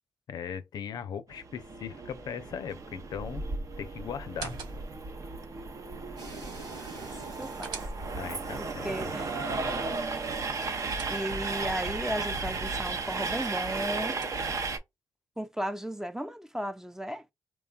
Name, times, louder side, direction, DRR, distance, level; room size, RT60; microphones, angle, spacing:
voice 1, 0.3-3.4 3.8-4.5 8.1-9.1, left 8 dB, 70° left, 0.4 m, -39 dB
Train, 1.3-14.8, right 3 dB, 50° right, 0.6 m, -35 dB
sound 1, 4.2-5.1 7.1-8.4 10.4-11.6 13.6-14.7, right 5 dB, 85° right, 0.7 m, -46 dB
sound 2, 6.2-10.3 10.6-11.2, right 3 dB, 70° right, 1.7 m, -46 dB
voice 2, 7.4-7.7 8.6-9.3 10.2-10.3 11.1-14.2 15.4-17.3, equal, 5° right, 0.4 m, -35 dB
3.0 x 2.2 x 2.3 m
supercardioid pair, 60°, 7 cm